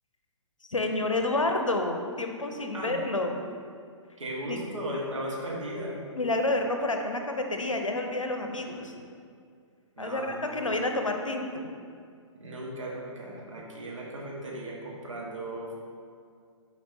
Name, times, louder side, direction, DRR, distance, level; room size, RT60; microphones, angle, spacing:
voice 1, 0.7-3.4 4.5-4.6 6.1-8.9 10.0-11.7, left 2 dB, 85° left, 4 dB, 0.7 m, -29 dB
voice 2, 4.2-6.0 10.0-10.7 12.3-15.7, right 1 dB, 75° right, -3 dB, 1.4 m, -36 dB
7.4 x 4.6 x 2.8 m, 2.2 s
figure-of-eight pair, 120°, 16 cm